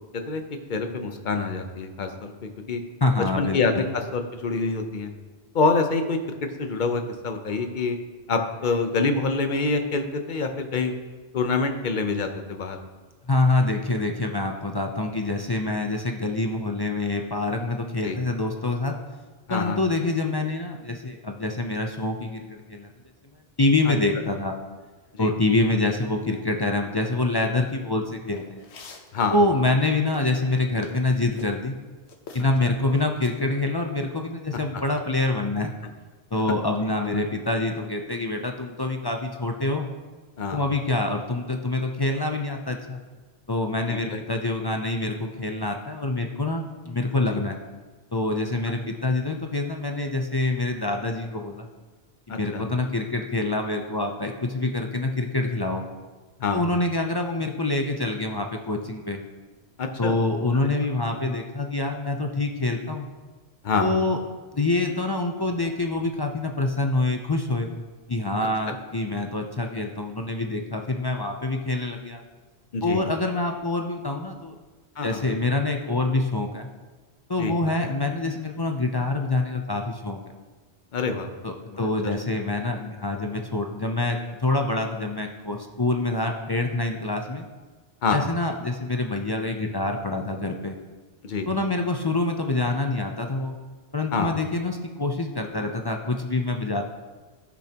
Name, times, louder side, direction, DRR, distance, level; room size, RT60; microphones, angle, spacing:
voice 1, 0.7-2.8 3.4-5.1 5.5-8.0 8.3-10.9 11.3-12.8 18.0-18.2 19.5-19.8 25.1-25.3 29.1-29.4 36.5-36.6 37.0-37.3 40.4-40.6 43.9-44.2 47.2-47.4 52.3-52.6 56.4-56.7 59.8-60.2 63.6-63.9 68.7-68.8 72.7-73.0 75.0-75.4 77.4-77.7 80.9-81.3 81.7-82.1 88.0-88.2 91.2-91.5 94.1-94.3, left 4 dB, 50° left, 6 dB, 0.9 m, -26 dB
voice 2, 3.0-3.9 13.3-18.9 19.5-22.9 23.6-24.5 25.2-28.6 29.3-31.8 32.3-35.7 36.3-39.9 40.5-43.0 43.5-47.6 48.1-51.7 52.3-55.8 56.5-59.2 60.0-63.1 63.8-64.2 64.5-67.7 68.1-72.2 72.8-74.5 75.0-76.7 77.3-80.2 81.4-87.5 88.1-90.8 91.5-93.5 93.9-96.8, left 2 dB, 30° left, 3 dB, 0.4 m, -26 dB
sound 1, 28.3-29.1 29.7-31.5 32.1-32.6 32.9-33.5, left 4 dB, 85° left, 1.1 m, -45 dB
13.5 x 6.2 x 2.9 m, 1.3 s
omnidirectional pair, 1.1 m